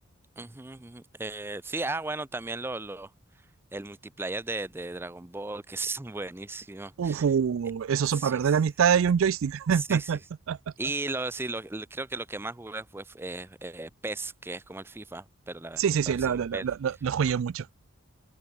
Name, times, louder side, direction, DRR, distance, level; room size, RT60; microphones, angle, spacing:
voice 1, 0.4-3.1 3.7-7.2 8.1-8.6 9.7-10.2 10.8-15.8 16.3-16.7, right 2 dB, 10° right, 0.4 m, -36 dB
voice 2, 7.0-10.2 10.5-10.6 15.8-17.7, right 7 dB, 75° right, 0.4 m, -25 dB
open air
head